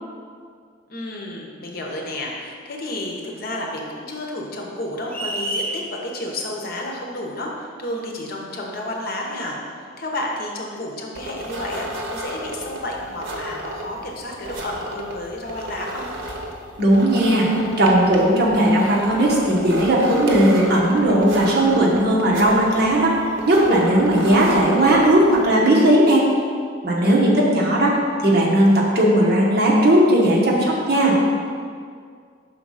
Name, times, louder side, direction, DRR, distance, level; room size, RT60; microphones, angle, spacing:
voice 1, 0.9-9.6 10.0-16.1 23.8-24.1 27.0-27.4, left 1 dB, 55° left, -1 dB, 0.9 m, -31 dB
sound 1, 5.1-5.8, right 1 dB, 10° left, 0.8 m, -27 dB
sound 2, 11.1-25.5, equal, 85° right, 0.9 m, -33 dB
voice 2, 16.8-17.5 17.8-23.1 23.5-26.2 26.8-28.0 28.2-31.2, right 1 dB, 60° right, -4 dB, 1.2 m, -17 dB
5.8 x 3.8 x 5.5 m, 2.1 s
head